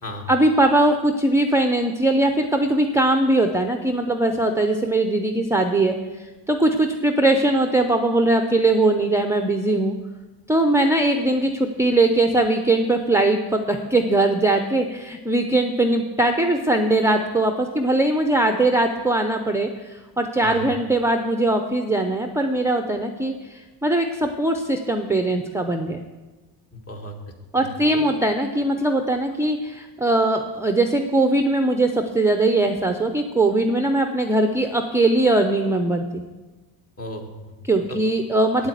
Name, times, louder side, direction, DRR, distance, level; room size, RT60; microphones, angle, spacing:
voice 1, 0.3-6.0 6.5-9.9 10.5-26.1 27.5-36.2 37.6-38.7, right 2 dB, 5° right, 6 dB, 0.5 m, -20 dB
voice 2, 26.7-28.0 37.0-37.5 37.9-38.0 38.6-38.7, left 1 dB, 35° left, 3 dB, 1.9 m, -35 dB
9.2 x 8.0 x 8.0 m, 1.2 s
cardioid pair, 125°, 43 cm